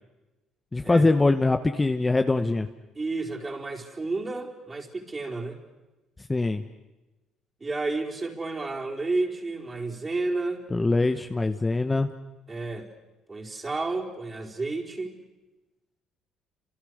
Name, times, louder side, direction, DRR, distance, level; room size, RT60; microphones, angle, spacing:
voice 1, 0.7-2.7 6.3-6.6 10.7-12.1, left 2 dB, 15° left, 7 dB, 1.1 m, -23 dB
voice 2, 2.9-5.6 7.6-10.7 12.5-12.9 13.3-15.2, right 3 dB, 25° right, 0 dB, 4.4 m, -31 dB
29.5 x 27.0 x 6.5 m, 1.1 s
cardioid pair, 95°, 0 cm